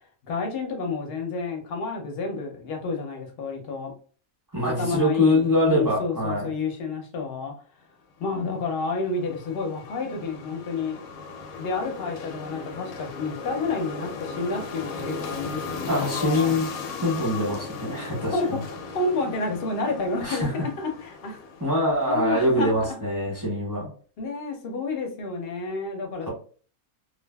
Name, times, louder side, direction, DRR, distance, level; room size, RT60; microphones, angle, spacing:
voice 1, 0.2-3.9 4.6-7.5 8.2-11.0 11.6-16.5 18.3-21.4 22.1-23.0 24.2-26.3, left 3 dB, 55° left, 2 dB, 0.7 m, -30 dB
voice 2, 4.5-6.5 15.9-16.7 17.0-18.6 20.2-20.5 21.6-23.9, left 1 dB, 15° right, -5 dB, 0.9 m, -24 dB
sound 1, 8.3-22.7, left 4 dB, 75° left, 1.0 m, -37 dB
2.5 x 2.4 x 2.2 m, 0.41 s
omnidirectional pair, 1.5 m